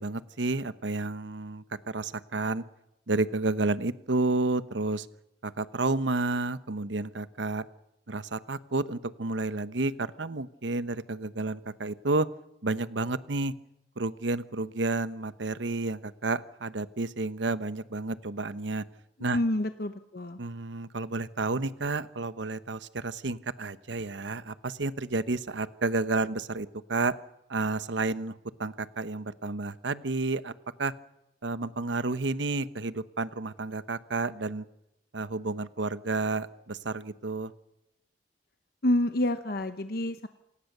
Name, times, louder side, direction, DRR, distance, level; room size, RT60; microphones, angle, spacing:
voice 1, 0.0-2.6 3.1-5.1 5.4-7.6 8.1-12.3 12.6-13.5 14.0-18.8 19.2-19.4 20.4-27.1 27.5-28.3 28.6-30.5 30.8-30.9 31.4-34.6 35.1-37.5, right 3 dB, 90° right, 14 dB, 1.0 m, -31 dB
voice 2, 19.3-20.4 38.8-40.3, left 1 dB, 55° left, 9 dB, 1.0 m, -28 dB
27.5 x 18.5 x 6.7 m, 0.87 s
head